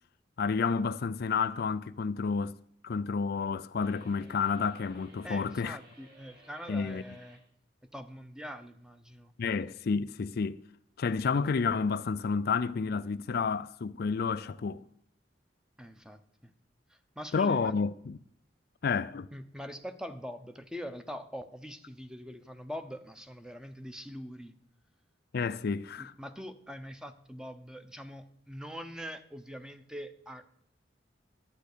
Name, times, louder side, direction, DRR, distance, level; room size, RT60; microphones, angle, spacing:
voice 1, 0.4-2.6 2.8-5.8 6.7-7.0 9.4-10.6 11.0-14.8 17.3-18.2 18.8-19.3 25.3-26.1, left 5 dB, 55° left, 0.4 m, -30 dB
sound 1, 3.8-7.4, equal, 60° right, 6.8 m, -58 dB
voice 2, 5.2-7.4 7.9-9.3 15.8-16.5 16.9-17.7 19.3-24.5 26.0-30.4, equal, 5° right, 0.8 m, -43 dB
12.0 x 9.2 x 6.8 m
head